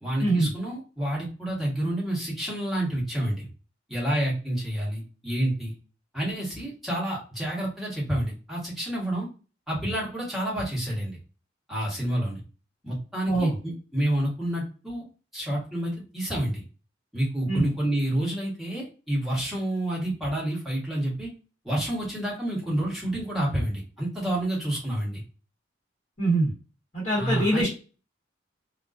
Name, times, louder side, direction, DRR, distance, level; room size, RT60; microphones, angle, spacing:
voice 1, 0.0-3.5 3.9-5.7 6.1-9.3 9.7-11.2 11.7-12.4 12.8-15.0 15.3-16.6 17.1-21.3 21.6-25.2 27.1-27.7, right 1 dB, ahead, -7 dB, 1.1 m, -29 dB
voice 2, 26.2-26.5 26.9-27.7, right 2 dB, 40° left, -6 dB, 1.1 m, -23 dB
2.4 x 2.2 x 2.3 m, 0.35 s
head